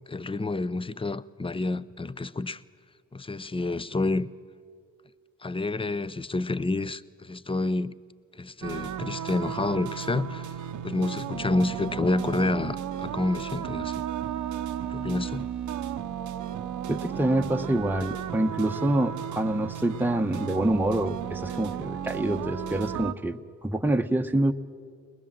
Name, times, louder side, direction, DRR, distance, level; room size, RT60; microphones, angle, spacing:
voice 1, 0.1-2.6 3.1-4.3 5.4-8.0 8.4-10.5 10.8-14.0 14.9-15.5, left 2 dB, 15° left, 0.7 m, -29 dB
sound 1, 8.6-23.1, right 9 dB, 75° right, 0.9 m, -34 dB
voice 2, 16.9-24.5, right 1 dB, 5° right, 1.0 m, -26 dB
21.5 x 19.5 x 7.4 m
supercardioid pair, 50°, 31 cm